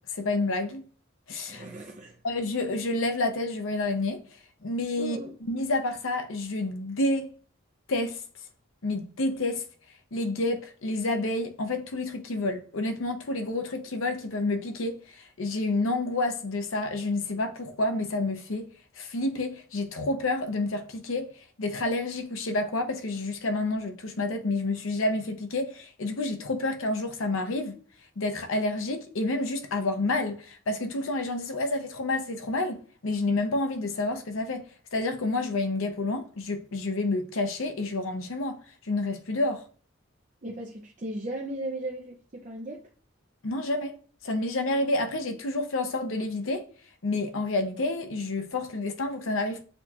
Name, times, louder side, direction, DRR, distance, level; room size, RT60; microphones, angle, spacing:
voice 1, 0.1-0.9 1.3-1.6 2.2-4.2 4.6-7.3 7.9-8.2 8.8-9.6 10.1-18.7 19.0-21.3 21.6-27.8 28.2-38.6 38.8-39.6 43.4-44.0 44.2-46.6 47.0-49.6, left 2 dB, 75° left, 0.7 m, -29 dB
voice 2, 1.5-2.2 5.0-5.4 40.4-42.8, right 1 dB, 35° right, 0.5 m, -36 dB
6.6 x 2.4 x 2.8 m
head